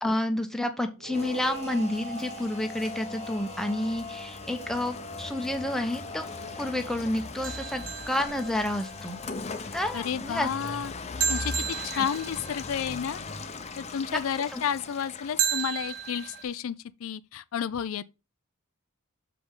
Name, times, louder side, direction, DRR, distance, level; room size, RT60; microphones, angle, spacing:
voice 1, 0.0-6.3 6.6-9.2 9.7-10.5 11.7-12.0 14.1-14.2 14.5-14.6, left 1 dB, ahead, 0.9 m, -30 dB
sound 1, 1.0-9.6, right 5 dB, 70° right, 0.9 m, -45 dB
Rain, 1.1-16.5, left 4 dB, 30° left, 0.7 m, -39 dB
sound 2, 7.4-9.0 11.2-12.8 15.4-16.4, right 8 dB, 40° right, 1.1 m, -32 dB
voice 2, 9.9-10.9 11.3-11.5 11.8-13.2 13.8-16.8 17.0-18.0, left 8 dB, 70° left, 0.4 m, -31 dB
6.8 x 5.0 x 3.7 m
head